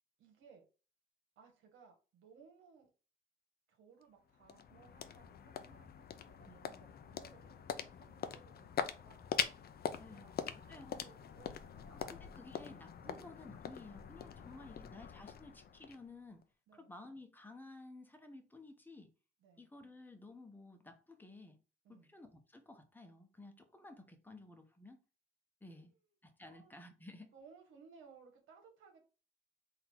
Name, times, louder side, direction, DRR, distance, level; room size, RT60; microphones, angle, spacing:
voice 1, 0.2-0.6 1.4-2.9 3.7-9.3 10.0-12.8 13.0-13.2 14.3-15.3 16.7-16.9 19.4-19.7 21.8-22.1 25.6-25.9 26.5-26.8 27.3-29.0, right 5 dB, 80° right, 1.4 m, -62 dB
sound 1, 4.0-16.4, left 8 dB, 50° left, 0.6 m, -43 dB
voice 2, 10.0-10.3 10.7-11.1 11.9-16.4 16.7-19.1 19.6-21.6 21.9-25.0 25.6-25.9 26.2-27.3, left 2 dB, 10° left, 1.0 m, -54 dB
3.9 x 2.8 x 4.5 m
cardioid pair, 90°, 20 cm